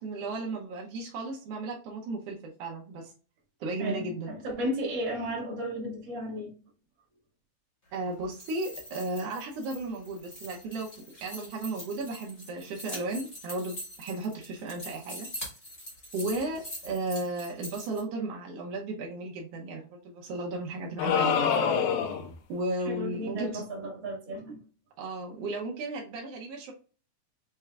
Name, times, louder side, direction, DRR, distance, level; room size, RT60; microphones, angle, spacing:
voice 1, 0.0-3.1 3.6-4.3 7.9-15.3 16.1-21.5 22.5-23.6 25.0-26.7, right 2 dB, 85° right, 0 dB, 1.3 m, -34 dB
voice 2, 3.8-6.5 22.9-24.6, equal, 40° right, -3 dB, 2.1 m, -34 dB
sound 1, 8.2-18.0, equal, 35° left, 0.8 m, -43 dB
sound 2, 21.0-22.4, left 7 dB, 75° left, 1.8 m, -25 dB
6.7 x 3.3 x 2.3 m, 0.38 s
omnidirectional pair, 3.9 m